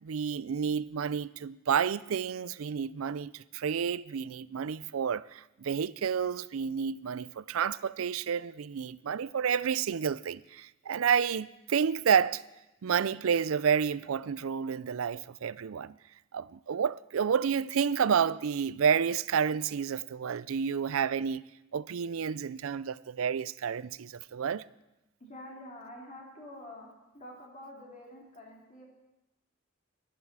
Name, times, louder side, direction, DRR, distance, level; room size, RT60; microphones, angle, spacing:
voice 1, 0.0-12.4 12.8-15.9 16.3-21.4 21.7-24.6, right 7 dB, 85° right, 0.4 m, -30 dB
voice 2, 25.2-26.9 27.1-28.8, left 1 dB, 35° left, 2.9 m, -47 dB
12.0 x 11.5 x 7.3 m
head